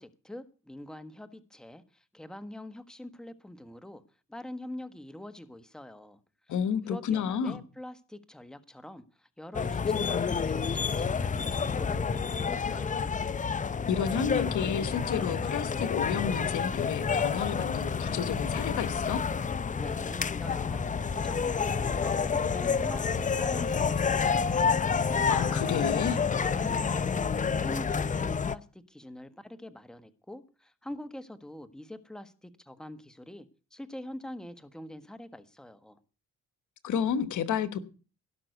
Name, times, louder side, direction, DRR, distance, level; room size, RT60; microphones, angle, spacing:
voice 1, 0.0-4.0 4.3-6.2 6.5-6.6 6.9-13.1 19.8-25.1 25.6-36.0, left 1 dB, ahead, 1.3 m, -44 dB
voice 2, 6.5-7.6 13.9-19.2 25.3-26.2 36.8-37.8, left 8 dB, 75° left, 1.3 m, -31 dB
sound 1, 9.5-28.6, left 5 dB, 25° left, 0.6 m, -29 dB
17.5 x 6.0 x 8.0 m
cardioid pair, 90°, 30 cm